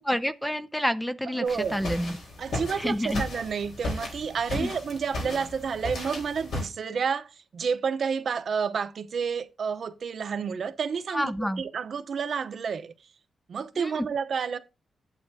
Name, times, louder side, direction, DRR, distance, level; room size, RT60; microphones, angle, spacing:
voice 1, 0.0-2.2 2.8-3.2 4.6-4.7 11.1-11.6 13.8-14.1, equal, 5° left, 0.4 m, -28 dB
voice 2, 1.3-1.8 2.4-12.9 13.5-14.6, right 6 dB, 55° right, 0.7 m, -30 dB
sound 1, 1.5-6.7, left 2 dB, 80° left, 3.8 m, -35 dB
11.5 x 7.9 x 2.7 m
wide cardioid pair, 160°, 0 cm